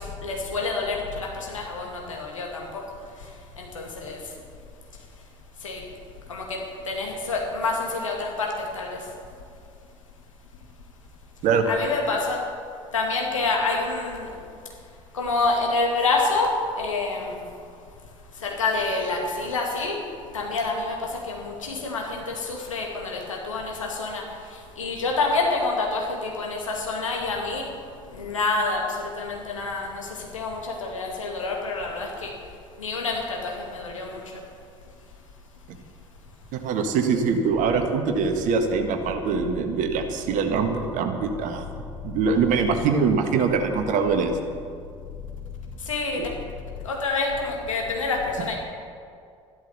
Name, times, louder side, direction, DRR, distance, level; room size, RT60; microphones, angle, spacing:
voice 1, 0.2-2.6 3.6-4.2 5.6-5.8 6.3-6.4 6.9-9.0 11.7-12.4 12.9-14.3 15.1-16.5 16.8-17.3 18.4-20.0 20.3-21.0 21.3-24.2 24.8-27.7 28.1-30.1 30.3-32.3 32.8-34.2 45.9-46.2 46.8-48.6, left 3 dB, 80° left, 0 dB, 2.2 m, -27 dB
voice 2, 36.5-41.6 42.0-44.4, right 5 dB, 50° right, 6 dB, 1.6 m, -23 dB
13.5 x 12.0 x 6.7 m, 2.3 s
figure-of-eight pair, 55°, 16 cm